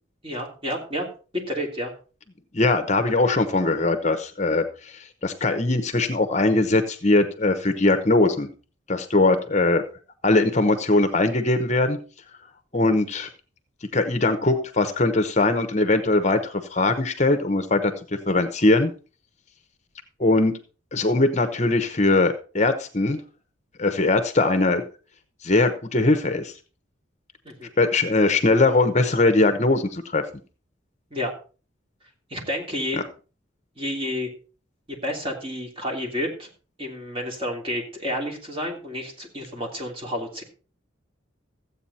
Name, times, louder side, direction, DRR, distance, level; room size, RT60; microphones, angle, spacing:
voice 1, 0.2-1.1 1.5-1.9 27.4-27.7 31.1-31.3 32.3-33.0 33.8-34.3 34.9-36.5 36.8-40.4, equal, 25° right, 1 dB, 3.0 m, -30 dB
voice 2, 2.5-8.5 8.9-9.8 10.2-12.0 12.7-13.3 13.9-17.9 18.3-18.9 20.2-20.5 20.9-23.2 23.8-24.8 25.4-26.5 27.8-30.2 32.9-33.0, left 2 dB, 35° left, 8 dB, 0.9 m, -21 dB
14.0 x 8.3 x 4.2 m, 0.36 s
head